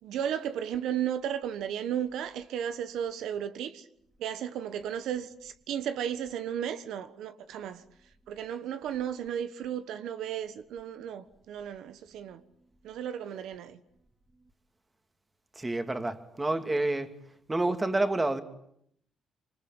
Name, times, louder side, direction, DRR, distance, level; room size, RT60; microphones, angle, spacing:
voice 1, 0.0-3.9 4.2-7.8 8.3-12.4 12.8-13.8, right 9 dB, 85° right, 1.4 m, -34 dB
voice 2, 15.6-17.2 17.5-18.4, right 2 dB, 20° right, 2.6 m, -28 dB
26.5 x 25.0 x 9.0 m
cardioid pair, 90°, 0 cm